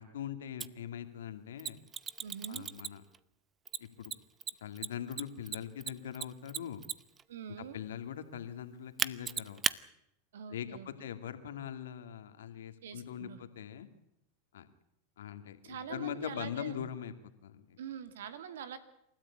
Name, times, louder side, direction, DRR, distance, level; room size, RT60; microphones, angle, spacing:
voice 1, 0.0-1.8 2.5-3.0 3.8-4.1 4.6-6.8 7.7-9.6 10.5-13.9 14.5-14.7 15.2-17.1 17.4-17.8, left 9 dB, 80° left, 9 dB, 2.3 m, -42 dB
Mechanisms, 0.6-0.7 1.6-3.2 3.7-7.2 9.0-9.8, right 7 dB, 25° right, 0.8 m, -35 dB
voice 2, 2.2-2.7 7.3-7.8 10.3-10.9 12.8-13.4 15.6-16.8 17.8-18.8, right 8 dB, 80° right, 11 dB, 2.3 m, -44 dB
28.0 x 13.5 x 8.7 m, 0.79 s
hypercardioid pair, 105°, 0 cm